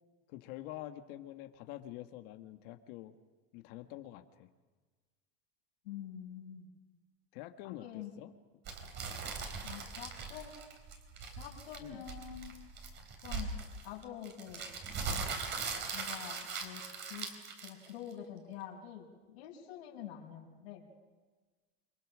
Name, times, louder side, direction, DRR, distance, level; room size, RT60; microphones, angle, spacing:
voice 1, 0.3-3.2 3.5-4.5 7.3-8.3 11.8-12.0, left 14 dB, 60° left, 6 dB, 1.7 m, -46 dB
voice 2, 5.8-6.7 7.6-8.1 9.6-10.5 11.4-12.5 13.2-13.5 13.8-14.7 15.9-16.8 17.1-17.3 17.6-20.8, left 10 dB, 80° left, -6 dB, 5.7 m, -46 dB
sound 1, 8.7-18.1, right 5 dB, 35° right, 4.4 m, -40 dB
28.5 x 22.5 x 6.3 m, 1.3 s
supercardioid pair, 140°, 32 cm